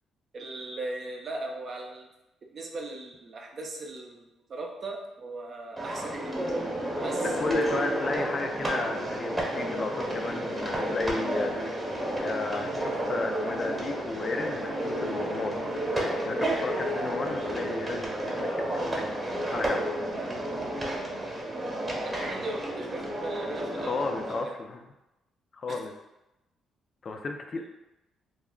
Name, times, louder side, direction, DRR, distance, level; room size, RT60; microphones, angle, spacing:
voice 1, 0.3-2.1 2.4-6.4 7.0-7.3 7.8-7.9 21.8-24.0 24.4-24.5 25.7-25.8, right 2 dB, 50° right, 1 dB, 0.5 m, -38 dB
sound 1, 5.8-24.4, right 1 dB, 20° right, 0.9 m, -31 dB
voice 2, 7.4-11.8 12.2-15.6 16.2-19.1 19.5-19.9 23.8-24.8 25.5-25.9 27.0-27.7, left 3 dB, 45° left, 4 dB, 0.3 m, -33 dB
2.3 x 2.1 x 3.5 m, 0.95 s
cardioid pair, 90°, 0 cm